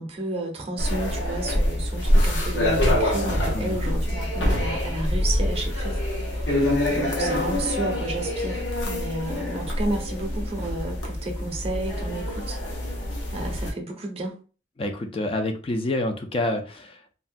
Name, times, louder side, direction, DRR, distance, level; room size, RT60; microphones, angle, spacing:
voice 1, 0.0-6.0 6.3-12.6 13.3-14.4, right 2 dB, 35° right, 0.6 m, -32 dB
sound 1, 0.8-13.7, left 1 dB, 75° left, 0.9 m, -25 dB
voice 2, 14.8-17.1, left 1 dB, 30° left, 0.4 m, -28 dB
3.3 x 2.1 x 2.4 m
head